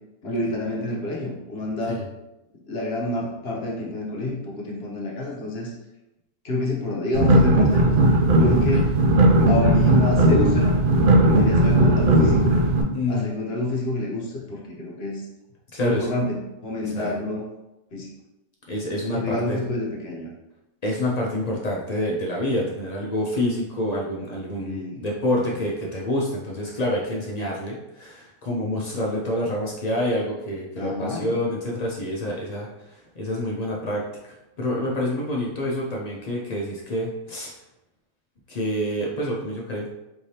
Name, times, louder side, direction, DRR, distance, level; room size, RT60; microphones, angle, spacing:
voice 1, 0.2-2.0 2.7-5.7 6.4-8.0 8.4-8.9 9.5-10.8 11.2-12.6 13.1-15.2 15.8-17.4 17.9-18.1 19.1-20.3 24.6-25.0 30.8-31.4, left 2 dB, 50° left, -3 dB, 0.9 m, -28 dB
sound 1, 7.1-12.8, right 1 dB, 85° right, 0.4 m, -17 dB
voice 2, 12.9-13.3 15.7-16.1 16.8-17.1 18.7-19.6 20.8-37.6 38.5-39.9, left 1 dB, 70° left, -3 dB, 0.3 m, -27 dB
4.5 x 3.2 x 2.8 m, 0.95 s
omnidirectional pair, 1.5 m